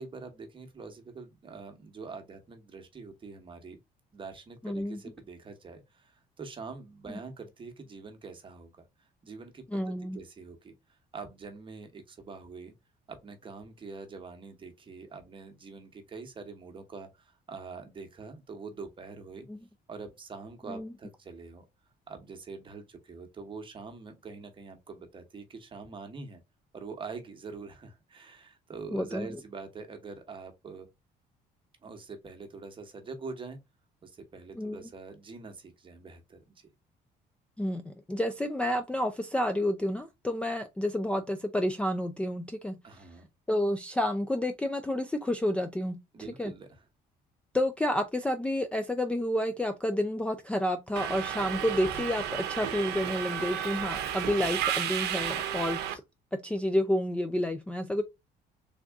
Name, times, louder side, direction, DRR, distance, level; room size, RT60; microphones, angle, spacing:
voice 1, 0.0-3.8 4.1-8.8 9.2-9.8 10.1-12.7 13.1-19.5 19.9-21.6 22.1-26.4 26.7-30.9 31.8-33.6 34.0-36.7 42.8-43.3 46.1-46.8, right 4 dB, 30° right, 1.1 m, -44 dB
voice 2, 4.6-5.0 7.1-7.2 9.7-10.2 19.5-19.6 20.7-20.9 28.9-29.3 34.6-34.8 37.6-42.8 43.5-46.0 46.4-46.5 47.5-56.0 56.3-58.0, left 1 dB, 5° left, 0.4 m, -30 dB
Subway metro underground, 51.0-55.9, right 9 dB, 80° right, 0.7 m, -32 dB
3.5 x 2.6 x 3.4 m
cardioid pair, 110°, 17 cm